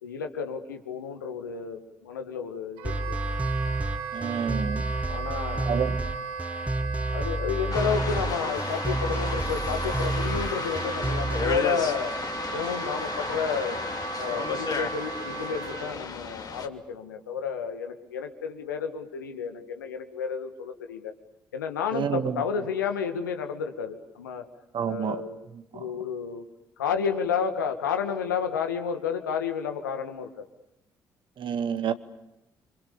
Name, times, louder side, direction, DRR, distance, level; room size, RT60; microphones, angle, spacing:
voice 1, 0.0-3.2 5.1-5.9 7.1-12.1 12.5-13.8 14.2-21.1 21.5-24.4 24.9-25.4 25.7-26.4 26.8-30.4, left 6 dB, 85° left, 6 dB, 2.1 m, -31 dB
sound 1, 2.8-11.6, right 2 dB, 15° right, 1.6 m, -30 dB
Wind instrument woodwind instrument, 2.8-16.0, right 5 dB, 70° right, 2.1 m, -36 dB
voice 2, 4.1-4.8 5.7-5.9 21.9-22.3 24.7-25.2 31.4-31.9, right 8 dB, 55° right, 10 dB, 2.0 m, -28 dB
sound 2, 7.7-16.7, left 5 dB, 40° left, 2.9 m, -34 dB
29.5 x 26.0 x 6.9 m, 0.87 s
figure-of-eight pair, 45°, 10 cm